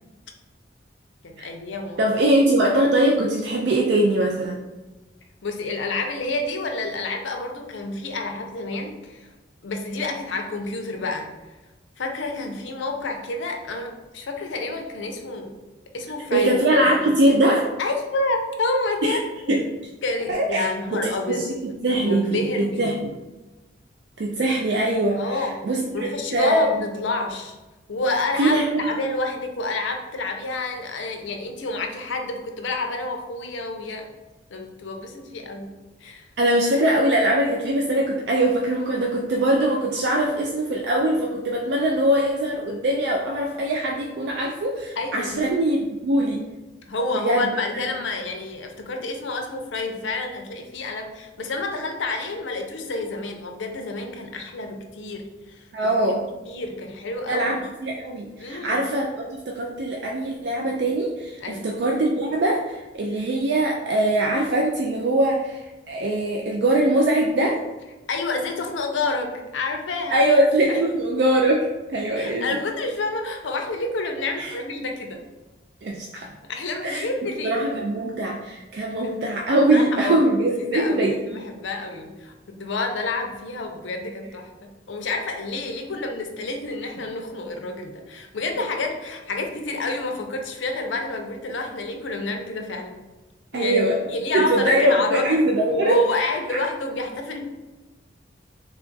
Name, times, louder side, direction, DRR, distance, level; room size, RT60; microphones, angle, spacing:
voice 1, 1.2-2.2 5.4-9.3 9.6-11.3 12.0-15.6 15.9-17.1 17.8-19.2 19.5-19.6 20.0-21.5 21.9-23.0 25.2-25.6 25.9-27.5 27.9-28.6 28.9-34.1 34.5-36.3 45.0-45.5 46.8-55.9 56.5-57.5 58.4-58.8 61.4-61.7 68.1-70.2 70.7-70.8 72.2-75.2 76.4-77.6 79.7-93.0 93.5-93.8 94.1-95.4 95.8-97.4, left 3 dB, 80° left, 4 dB, 0.5 m, -29 dB
voice 2, 2.0-4.6 16.3-17.7 19.0-19.2 19.5-19.6 20.3-21.5 21.8-23.1 24.2-26.7 28.4-29.0 36.4-46.4 47.2-47.8 55.7-56.2 57.3-59.1 59.5-67.6 70.1-72.5 74.4-74.5 75.8-76.3 76.8-81.4 93.5-94.0 94.3-96.6, right 1 dB, 60° right, 0 dB, 0.3 m, -22 dB
3.3 x 2.3 x 3.8 m, 1.1 s
head